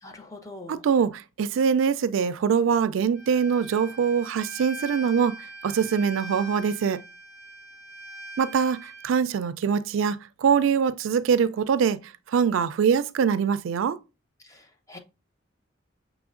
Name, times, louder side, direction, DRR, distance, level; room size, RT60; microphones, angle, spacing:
voice 1, 0.0-0.8 14.4-15.0, left 2 dB, 15° left, 0.5 m, -44 dB
voice 2, 0.7-5.4 5.6-7.0 8.4-12.0 12.3-14.0, right 7 dB, 80° right, 0.3 m, -23 dB
Bowed string instrument, 3.1-9.1, right 1 dB, 5° right, 1.6 m, -41 dB
6.1 x 3.1 x 2.4 m
head